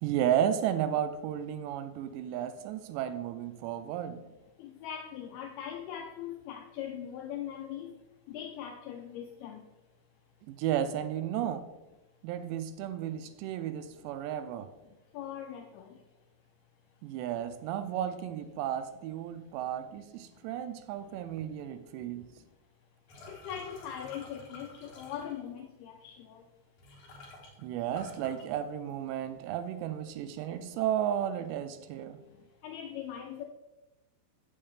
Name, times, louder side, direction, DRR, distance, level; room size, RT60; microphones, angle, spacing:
voice 1, 0.0-4.2 10.5-11.7 12.2-14.7 17.0-22.3 27.6-32.2, right 10 dB, 90° right, 10 dB, 2.8 m, -33 dB
voice 2, 4.6-7.9 8.3-9.6 15.1-15.9 23.3-26.4 32.6-33.4, left 9 dB, 80° left, 3 dB, 2.3 m, -41 dB
sound 1, 23.1-25.6 26.5-26.6 26.8-29.2 29.5-30.0 30.4-31.0, left 2 dB, 60° left, 2.4 m, -51 dB
8.5 x 7.3 x 3.4 m, 1.0 s
omnidirectional pair, 4.9 m